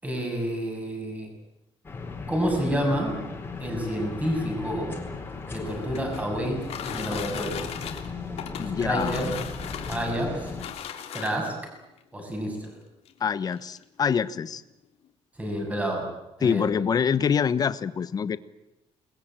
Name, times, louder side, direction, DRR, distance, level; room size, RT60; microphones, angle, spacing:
voice 1, 0.0-1.3 2.3-3.2 3.6-5.0 5.5-7.6 8.6-9.3 9.9-10.5 11.1-11.6 12.1-12.7 15.4-16.1 16.4-16.7, equal, 15° right, 2 dB, 7.3 m, -29 dB
sound 1, 1.8-10.6, left 4 dB, 20° left, 4.6 m, -37 dB
sound 2, 5.5-11.7 12.5-12.6 13.0-13.1 13.5-13.8, left 9 dB, 70° left, 3.1 m, -38 dB
voice 2, 8.6-9.2 13.2-14.6 16.4-18.4, left 7 dB, 35° left, 15 dB, 1.1 m, -25 dB
28.0 x 21.0 x 9.0 m, 0.94 s
cardioid pair, 165°, 11 cm